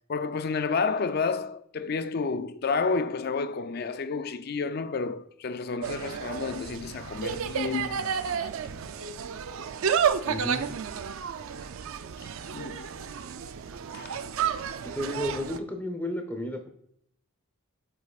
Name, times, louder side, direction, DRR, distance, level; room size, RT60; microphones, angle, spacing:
voice 1, 0.1-7.9 8.3-8.5 12.5-12.9 13.9-14.1, left 4 dB, 45° left, 0.4 m, -30 dB
Insect, 5.8-15.6, right 7 dB, 65° right, 0.4 m, -31 dB
voice 2, 10.2-10.7 14.9-16.7, equal, 10° left, 0.7 m, -32 dB
7.7 x 5.6 x 2.3 m
head